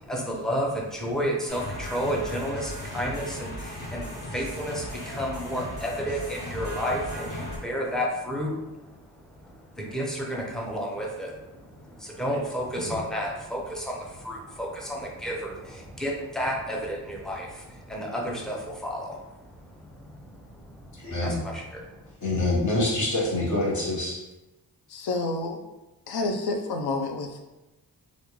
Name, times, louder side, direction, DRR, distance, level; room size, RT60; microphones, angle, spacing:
voice 1, 0.0-22.1, equal, ahead, -2 dB, 0.5 m, -32 dB
sound 1, 1.5-7.6, equal, 25° left, 1.1 m, -36 dB
voice 2, 21.0-21.3 22.2-24.2, left 2 dB, 50° left, -5 dB, 1.2 m, -25 dB
voice 3, 24.9-25.6 26.1-27.4, left 3 dB, 70° left, 4 dB, 0.6 m, -29 dB
3.5 x 2.5 x 3.0 m, 1.0 s
wide cardioid pair, 135°, 39 cm